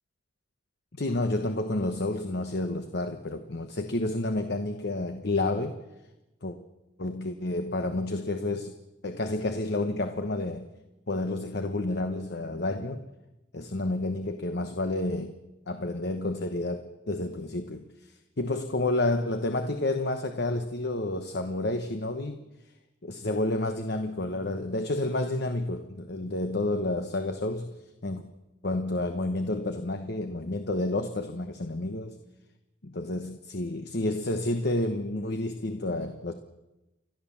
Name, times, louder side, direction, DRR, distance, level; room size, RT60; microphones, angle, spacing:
voice 1, 0.9-5.8 6.4-6.6 7.0-8.7 9.0-10.7 11.1-13.0 13.5-15.3 15.7-22.4 23.0-27.7 28.0-28.2 28.6-32.2 32.8-36.3, left 2 dB, 60° left, 7 dB, 1.1 m, -30 dB
29.5 x 12.0 x 7.3 m, 1.0 s
head